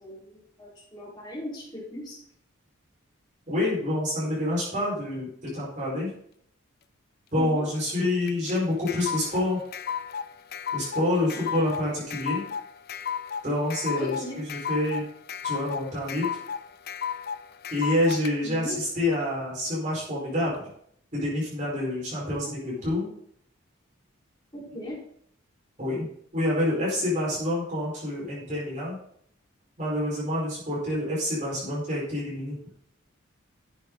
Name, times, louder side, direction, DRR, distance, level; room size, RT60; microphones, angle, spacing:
voice 1, 0.0-2.2 7.4-7.6 11.5-11.6 14.0-14.4 18.4-18.8 24.5-25.0, left 1 dB, 20° left, -6 dB, 4.8 m, -38 dB
voice 2, 3.5-5.3 5.5-6.1 7.3-9.6 10.7-12.4 13.4-15.1 15.4-16.3 17.7-20.6 21.1-23.1 25.8-26.1 26.3-29.0 29.8-32.6, left 1 dB, 35° right, -6 dB, 5.3 m, -27 dB
sound 1, 8.3-18.3, left 7 dB, 50° left, 0.5 m, -33 dB
11.0 x 8.2 x 4.1 m, 0.66 s
head